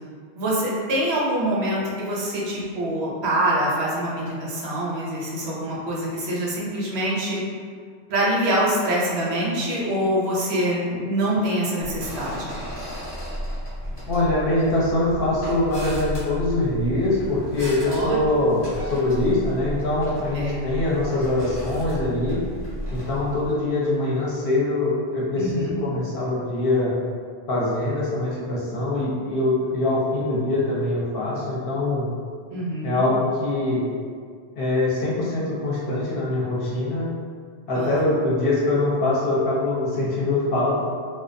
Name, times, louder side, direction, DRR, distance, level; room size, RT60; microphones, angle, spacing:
voice 1, 0.3-7.4 8.1-12.6 17.8-18.2 20.3-20.6 25.3-25.8 32.5-33.0 37.7-38.0, right 1 dB, 70° right, -5 dB, 0.8 m, -25 dB
sound 1, 11.8-23.5, equal, 25° left, 0.7 m, -34 dB
voice 2, 14.1-22.4 22.9-26.9 27.5-32.1 32.8-33.8 34.6-37.1 37.7-40.8, left 2 dB, 60° left, -7 dB, 0.7 m, -23 dB
2.4 x 2.1 x 2.5 m, 2.1 s
omnidirectional pair, 1.1 m